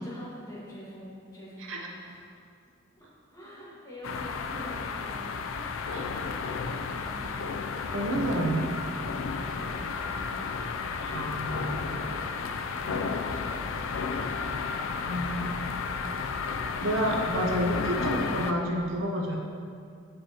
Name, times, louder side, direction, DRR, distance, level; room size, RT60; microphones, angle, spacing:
voice 1, 0.0-2.4 3.0-7.5 9.3-10.4 11.9-14.1, equal, 15° left, -8 dB, 1.4 m, -46 dB
sound 1, 4.0-18.5, left 5 dB, 90° left, 0.3 m, -32 dB
voice 2, 7.9-8.7 10.9-11.8 15.1-15.6 16.1-16.3 16.8-19.4, equal, 90° right, 0 dB, 0.8 m, -29 dB
6.9 x 5.1 x 2.8 m, 2.3 s
head